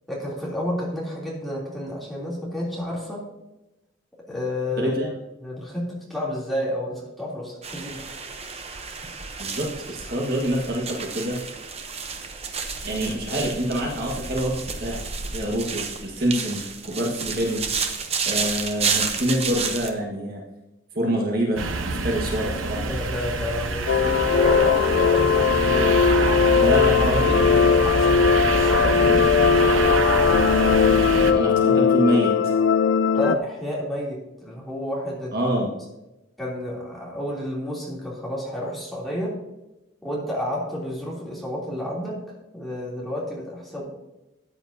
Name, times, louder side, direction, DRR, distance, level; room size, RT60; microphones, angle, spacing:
voice 1, 0.1-3.2 4.3-5.0 5.4-8.0 22.8-26.0 26.5-26.7 27.1-30.0 33.1-35.3 36.4-39.3 40.0-42.2 42.5-43.9, left 1 dB, ahead, -6 dB, 3.1 m, -30 dB
voice 2, 4.8-5.1 9.4-11.4 12.8-17.6 18.2-20.4 20.9-22.9 26.6-27.4 31.1-32.5 35.3-35.7, equal, 50° right, -1 dB, 1.6 m, -26 dB
sound 1, 7.6-19.9, right 5 dB, 30° right, 0.8 m, -31 dB
sound 2, 21.6-31.3, right 3 dB, 85° right, 1.0 m, -25 dB
sound 3, 23.9-33.4, left 6 dB, 70° left, 0.4 m, -19 dB
13.5 x 8.9 x 2.8 m, 0.99 s
head